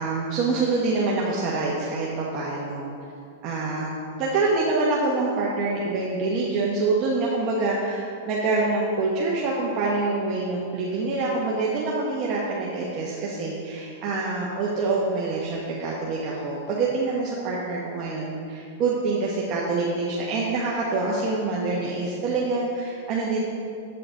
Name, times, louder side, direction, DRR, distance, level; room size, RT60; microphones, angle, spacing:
voice 1, 0.0-2.9 3.4-3.9 4.2-23.4, right 3 dB, 40° right, -5 dB, 1.0 m, -26 dB
8.0 x 5.8 x 3.8 m, 2.4 s
hypercardioid pair, 130°, 0 cm